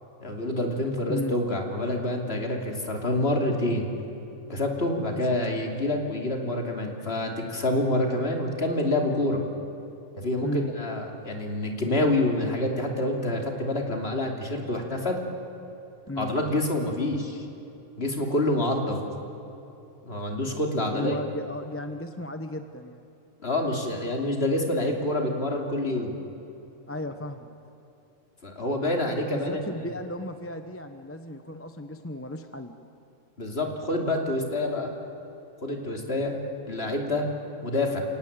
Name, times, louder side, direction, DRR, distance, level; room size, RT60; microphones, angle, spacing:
voice 1, 0.2-3.9 4.5-9.4 10.1-15.2 16.2-17.4 18.0-19.0 20.1-21.1 23.4-26.1 28.4-29.6 33.4-34.9 35.6-36.3 36.7-37.3 37.6-38.0, left 1 dB, 50° left, 2 dB, 3.1 m, -27 dB
voice 2, 5.1-5.7 10.4-10.7 16.1-16.3 20.9-23.0 26.9-27.5 29.3-32.7, left 1 dB, 10° left, 7 dB, 0.8 m, -35 dB
29.0 x 17.5 x 8.9 m, 2.9 s
omnidirectional pair, 1.4 m